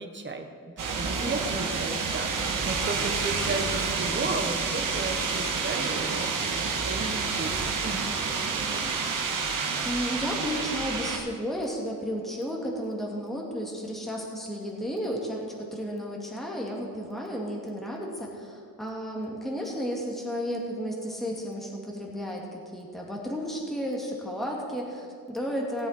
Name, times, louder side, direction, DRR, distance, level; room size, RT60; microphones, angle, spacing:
voice 1, 0.0-6.5 6.8-8.1 8.7-9.0, right 3 dB, 30° right, 4 dB, 1.4 m, -35 dB
sound 1, 0.8-11.2, right 5 dB, 65° right, 1.7 m, -29 dB
voice 2, 1.2-1.7 9.8-25.9, equal, ahead, -2 dB, 2.3 m, -33 dB
17.5 x 8.0 x 4.4 m, 2.2 s
cardioid pair, 75°, 35 cm